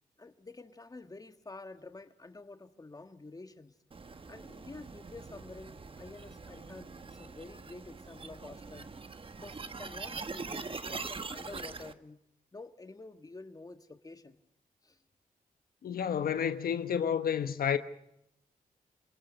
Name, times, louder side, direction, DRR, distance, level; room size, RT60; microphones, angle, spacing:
voice 1, 0.2-3.8 4.3-8.9 9.4-12.2 12.5-14.4 14.8-15.0, left 3 dB, 25° left, 1.7 m, -49 dB
sound 1, 3.9-11.9, right 4 dB, 35° right, 1.4 m, -43 dB
voice 2, 15.8-17.8, left 8 dB, 80° left, 1.2 m, -30 dB
29.0 x 20.0 x 5.4 m
cardioid pair, 90°, 15 cm